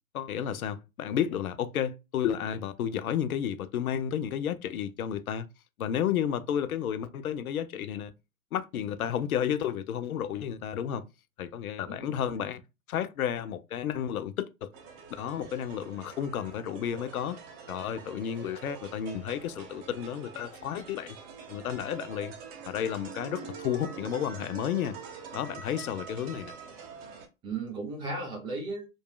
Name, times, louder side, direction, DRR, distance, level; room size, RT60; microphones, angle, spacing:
voice 1, 0.1-5.5 5.8-8.1 8.5-11.0 11.4-12.6 12.9-14.7 15.2-17.4 17.7-21.2 21.5-22.3 22.7-25.0 25.3-26.6, left 9 dB, 80° left, 0.5 m, -32 dB
voice 2, 11.9-12.3 26.2-26.4 27.4-28.9, right 3 dB, 10° right, 0.3 m, -36 dB
sound 1, 14.7-27.3, right 6 dB, 45° right, 0.9 m, -45 dB
3.0 x 2.6 x 2.2 m
hypercardioid pair, 105°, 42 cm